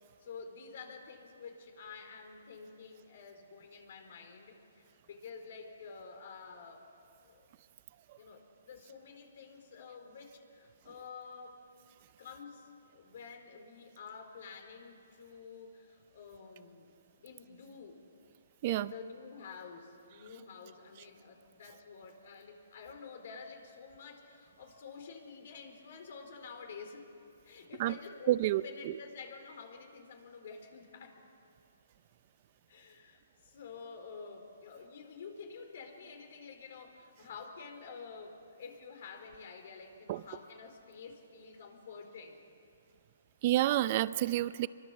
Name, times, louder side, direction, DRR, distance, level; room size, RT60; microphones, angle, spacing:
voice 1, 0.2-6.8 7.2-7.5 8.2-11.6 12.2-16.9 17.2-18.1 18.7-27.0 27.4-31.3 32.7-42.4, left 5 dB, 60° left, 5 dB, 4.5 m, -49 dB
voice 2, 28.3-29.0 40.1-40.2 43.4-44.7, right 14 dB, 40° right, 16 dB, 0.7 m, -29 dB
26.5 x 23.0 x 7.5 m, 2.5 s
hypercardioid pair, 145°, 0 cm